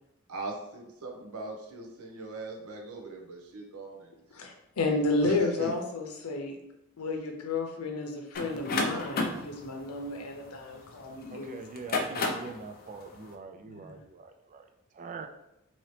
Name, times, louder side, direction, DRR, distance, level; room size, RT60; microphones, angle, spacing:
voice 1, 0.3-4.1 4.9-5.7, right 2 dB, 90° right, 0 dB, 0.7 m, -40 dB
voice 2, 4.3-6.6 7.0-11.6 13.7-14.0, left 3 dB, 90° left, 3 dB, 0.6 m, -32 dB
sound 1, 8.3-11.1 11.7-12.6, left 3 dB, 45° left, 0.5 m, -31 dB
voice 3, 11.3-14.7 14.9-15.3, right 4 dB, 35° right, 6 dB, 0.3 m, -44 dB
2.9 x 2.8 x 3.1 m, 0.86 s
head